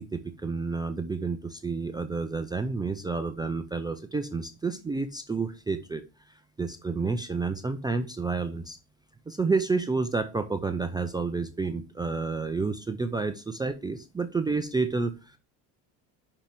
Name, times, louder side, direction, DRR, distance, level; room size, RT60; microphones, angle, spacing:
voice 1, 0.0-6.0 6.6-8.8 9.3-15.4, right 4 dB, 10° right, 8 dB, 0.4 m, -30 dB
5.9 x 5.8 x 6.0 m, 0.31 s
cardioid pair, 135°, 43 cm